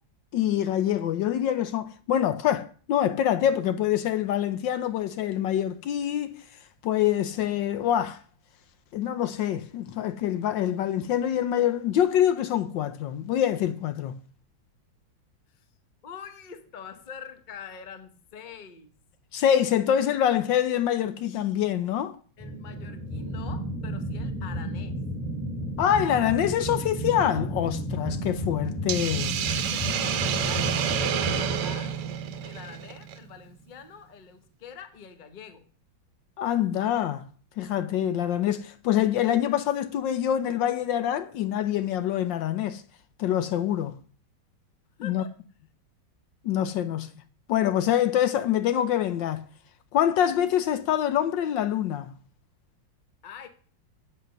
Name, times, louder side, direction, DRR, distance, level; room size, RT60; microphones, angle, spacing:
voice 1, 0.3-6.3 6.8-8.2 8.9-14.2 19.3-22.2 25.8-29.4 36.4-37.2 37.6-42.8 43.2-44.0 45.0-45.2 46.4-47.1 47.5-49.4 49.9-52.1, left 10 dB, 75° left, 1.3 m, -25 dB
voice 2, 16.0-18.9 22.4-25.0 29.4-32.0 32.4-35.6 45.0-45.3 53.2-53.5, left 7 dB, 35° left, 0.9 m, -45 dB
sound 1, 22.4-33.3, right 1 dB, 15° left, 2.5 m, -32 dB
Hiss, 28.9-33.2, right 9 dB, 65° right, 1.3 m, -29 dB
8.2 x 7.8 x 6.5 m
omnidirectional pair, 2.1 m